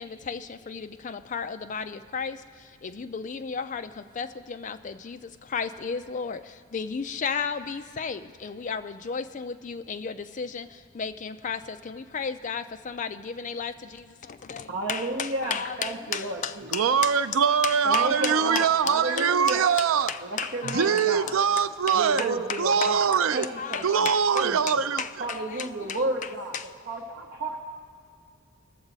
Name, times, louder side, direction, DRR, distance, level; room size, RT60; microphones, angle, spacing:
voice 1, 0.0-17.1 17.6-19.6 20.1-21.0 21.9-22.9 23.6-26.0 26.5-26.7, left 6 dB, 35° left, 10 dB, 0.4 m, -34 dB
voice 2, 14.7-16.7 17.8-19.7 20.2-21.3 21.9-24.1 24.3-24.6 25.2-26.6 26.9-27.6, right 2 dB, 50° right, -2 dB, 0.9 m, -32 dB
voice 3, 16.7-20.1 20.7-23.5 23.8-25.0, right 7 dB, 65° right, 11 dB, 0.4 m, -23 dB
21.0 x 7.1 x 4.0 m, 2.2 s
head